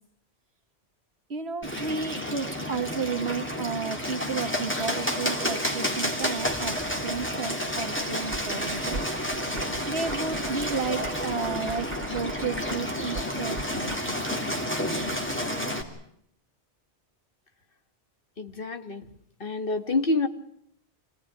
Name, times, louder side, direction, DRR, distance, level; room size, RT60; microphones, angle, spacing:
voice 1, 1.3-9.1 9.9-13.6, right 5 dB, 65° right, 5 dB, 2.1 m, -32 dB
Bird, 1.6-15.8, equal, 10° left, 3.3 m, -30 dB
sound 1, 8.3-14.0, right 2 dB, 90° right, 2.9 m, -40 dB
voice 2, 18.4-19.0 19.4-20.3, left 3 dB, 50° left, 7 dB, 1.9 m, -27 dB
27.5 x 18.5 x 9.8 m, 0.72 s
omnidirectional pair, 1.2 m